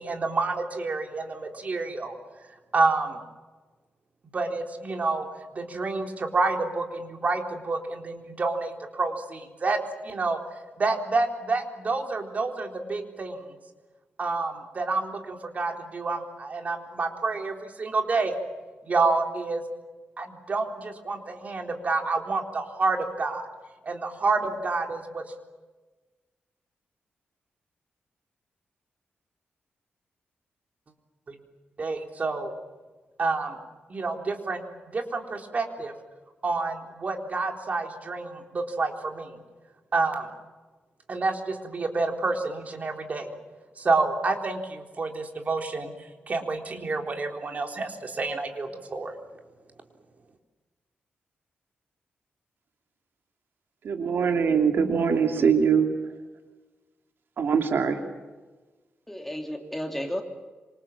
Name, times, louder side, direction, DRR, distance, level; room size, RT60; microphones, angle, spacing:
voice 1, 0.0-2.1 2.7-3.2 4.3-5.3 5.5-9.8 10.0-10.4 10.8-13.4 14.2-18.3 18.8-19.6 20.2-23.5 23.8-25.2 31.3-31.4 31.8-32.5 33.2-33.6 33.9-34.6 34.9-35.9 36.4-39.4 39.9-40.3 41.1-43.3 43.8-45.9 46.3-49.1, right 3 dB, 40° right, 4 dB, 3.9 m, -28 dB
voice 2, 53.8-55.9 57.4-58.0, right 6 dB, 70° right, 4 dB, 2.9 m, -22 dB
voice 3, 54.7-55.5 59.1-60.2, equal, 5° left, 3 dB, 3.1 m, -33 dB
26.5 x 26.0 x 7.4 m, 1.3 s
wide cardioid pair, 125°, 4 cm